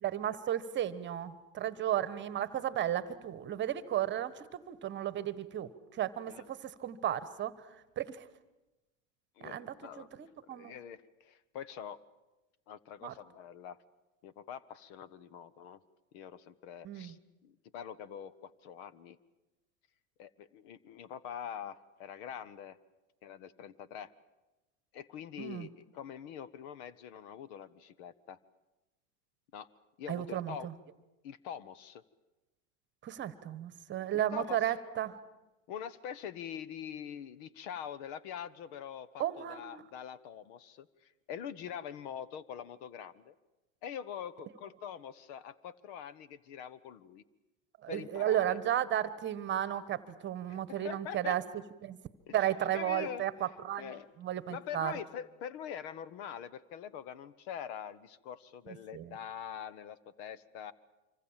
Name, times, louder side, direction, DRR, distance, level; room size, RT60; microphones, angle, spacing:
voice 1, 0.0-7.5 8.0-8.2 9.4-10.7 13.0-13.1 16.8-17.1 25.4-25.7 30.1-30.7 33.0-35.2 39.2-39.8 47.8-51.4 51.8-52.0 52.3-53.9 54.2-54.9 58.7-59.1, right 11 dB, 30° right, 16 dB, 1.3 m, -34 dB
voice 2, 9.4-12.0 12.7-13.8 14.2-15.8 16.1-17.2 17.4-19.2 20.2-22.8 23.2-24.1 24.9-28.4 29.5-29.7 30.0-30.7 31.2-32.0 34.1-34.8 35.7-43.3 43.8-47.2 47.9-48.6 50.5-51.4 52.3-53.3 53.8-54.1 54.5-60.7, left 8 dB, 55° left, 18 dB, 1.2 m, -44 dB
25.5 x 25.0 x 7.4 m, 1.0 s
hypercardioid pair, 115°, 39 cm